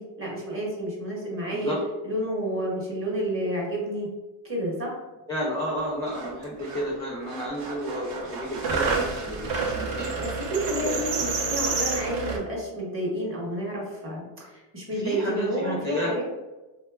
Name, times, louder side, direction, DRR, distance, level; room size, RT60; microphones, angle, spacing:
voice 1, 0.0-1.8 2.0-4.1 4.4-5.0 10.2-16.2, right 1 dB, 25° right, -3 dB, 0.9 m, -30 dB
voice 2, 5.3-10.1 10.8-11.1 15.0-16.1, equal, 10° left, -4 dB, 0.3 m, -31 dB
sound 1, 5.8-5.9 6.1-6.9 7.2-12.4, right 4 dB, 55° right, 0.7 m, -29 dB
2.7 x 2.2 x 2.3 m, 1.1 s
cardioid pair, 105°, 50 cm